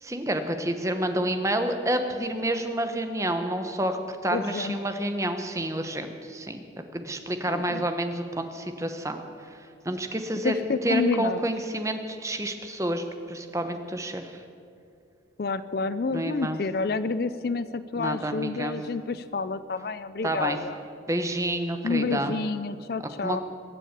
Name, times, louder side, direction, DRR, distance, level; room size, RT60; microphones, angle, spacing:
voice 1, 0.0-6.6 6.9-9.2 9.8-14.4 16.1-16.6 18.0-18.8 20.2-20.6 21.1-22.3 23.2-23.4, right 1 dB, 15° right, 7 dB, 1.0 m, -29 dB
voice 2, 4.3-4.8 7.5-7.8 10.4-11.4 15.4-20.8 21.8-23.4, left 4 dB, 55° left, 14 dB, 0.4 m, -29 dB
22.0 x 7.4 x 8.1 m, 2.4 s
head